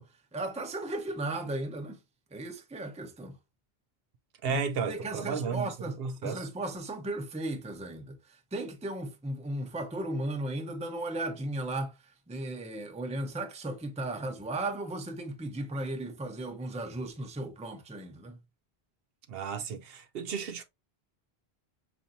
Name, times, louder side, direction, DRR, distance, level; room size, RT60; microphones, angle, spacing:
voice 1, 0.0-2.0 2.3-3.4 4.5-4.6 4.9-18.4, right 2 dB, 10° right, 0.5 m, -36 dB
voice 2, 4.4-5.7 6.0-6.5 19.3-20.6, right 6 dB, 70° right, 0.8 m, -33 dB
5.4 x 2.6 x 2.6 m
omnidirectional pair, 1.1 m